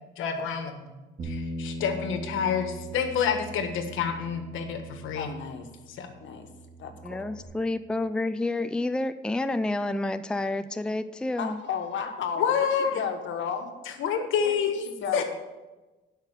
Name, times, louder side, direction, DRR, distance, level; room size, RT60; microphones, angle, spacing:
voice 1, 0.2-0.9 1.2-5.3 5.9-6.1 12.4-13.0 14.0-14.8 15.1-15.2, left 7 dB, 85° left, 7 dB, 1.4 m, -28 dB
Bass guitar, 1.2-7.4, right 1 dB, 50° right, 2.4 m, -40 dB
voice 2, 5.1-5.7 6.2-6.5 6.8-7.3 11.4-12.5 12.8-13.7 14.4-15.2, left 7 dB, 70° left, 5 dB, 1.5 m, -33 dB
voice 3, 7.0-11.6, left 2 dB, 5° left, 11 dB, 0.4 m, -29 dB
12.0 x 5.6 x 6.6 m, 1.1 s
cardioid pair, 90°, 20 cm